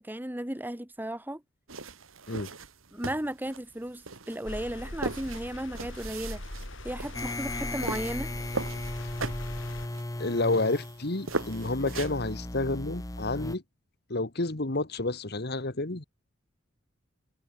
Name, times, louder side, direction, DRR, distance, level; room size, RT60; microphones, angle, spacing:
voice 1, 0.0-1.4 2.9-6.4 6.8-8.4, right 1 dB, 10° right, 1.3 m, -35 dB
sound 1, 1.7-12.3, right 3 dB, 85° right, 2.6 m, -39 dB
sound 2, 4.5-9.9, left 1 dB, 70° left, 7.1 m, -40 dB
sound 3, 7.1-13.6, left 2 dB, 15° left, 0.9 m, -37 dB
voice 2, 10.2-13.6 14.1-16.0, left 2 dB, 50° left, 1.6 m, -30 dB
head